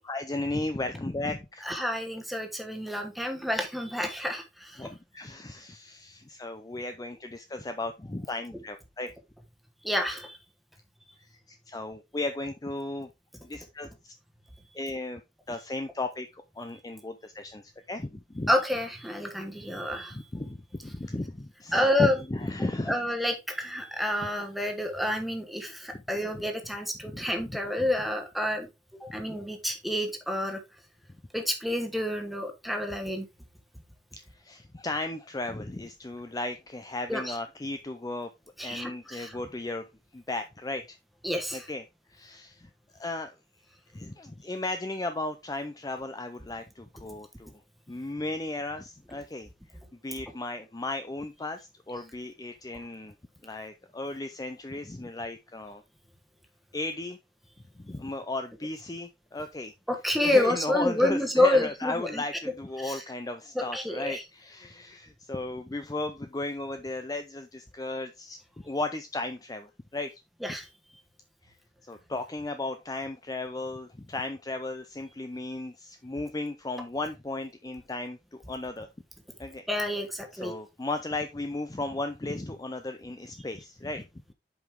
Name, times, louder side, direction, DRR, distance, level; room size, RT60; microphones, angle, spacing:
voice 1, 0.0-1.7 4.8-9.1 11.2-13.1 13.4-14.1 14.7-15.2 15.5-18.5 20.1-23.0 26.3-26.4 27.0-27.9 29.2-29.3 34.1-38.3 38.6-39.8 40.1-41.0 41.5-41.8 42.1-43.4 43.9-47.6 47.9-49.8 50.0-53.1 53.4-55.8 56.7-57.2 57.7-59.7 60.2-68.4 68.6-70.2 71.4-71.6 71.9-78.9 79.4-79.6 80.3-84.1, left 2 dB, 20° left, 8 dB, 0.5 m, -35 dB
voice 2, 1.6-4.9 9.8-10.4 18.5-20.2 21.7-22.1 22.9-28.7 29.0-30.6 31.3-33.3 37.1-37.3 38.6-39.3 41.2-41.6 59.9-62.2 62.8-63.0 63.5-64.2 70.4-70.6 79.7-80.5, left 1 dB, ahead, 3 dB, 1.2 m, -28 dB
7.8 x 5.3 x 3.6 m, 0.24 s
head